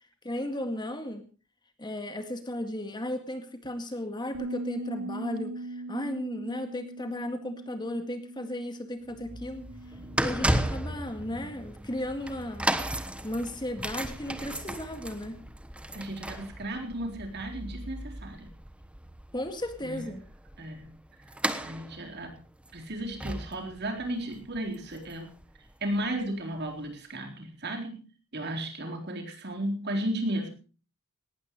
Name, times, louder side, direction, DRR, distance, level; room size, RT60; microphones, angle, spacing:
voice 1, 0.2-1.3 1.8-9.7 10.2-12.7 13.2-15.4 19.3-20.2, left 1 dB, 20° left, 7 dB, 2.0 m, -35 dB
Bass guitar, 4.3-10.6, right 2 dB, 90° right, 3.3 m, -40 dB
sound 1, 9.1-26.1 26.7-26.8, right 1 dB, 5° right, 1.1 m, -35 dB
voice 2, 15.9-18.5 19.8-20.1 20.6-20.9 21.6-22.4 22.7-25.3 25.8-28.1 28.3-30.5, right 1 dB, 50° right, 4 dB, 4.0 m, -34 dB
19.0 x 18.0 x 3.1 m, 0.36 s
head